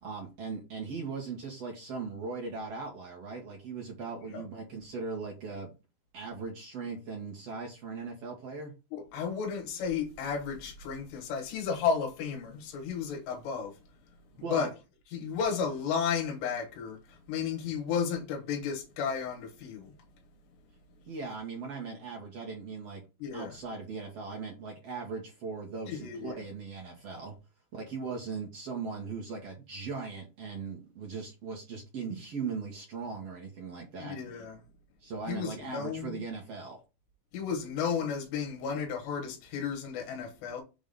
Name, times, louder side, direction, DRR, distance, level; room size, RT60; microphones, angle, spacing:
voice 1, 0.0-5.7 6.1-8.7 14.4-14.7 21.1-23.0 23.3-27.3 27.7-34.2 35.0-36.8, right 4 dB, 55° right, 1.8 m, -39 dB
voice 2, 8.9-13.8 14.4-14.7 15.1-20.0 23.2-23.6 25.9-26.4 34.0-34.6 35.3-36.2 37.3-40.6, left 6 dB, 80° left, 3.4 m, -33 dB
6.9 x 3.7 x 5.3 m
omnidirectional pair, 5.0 m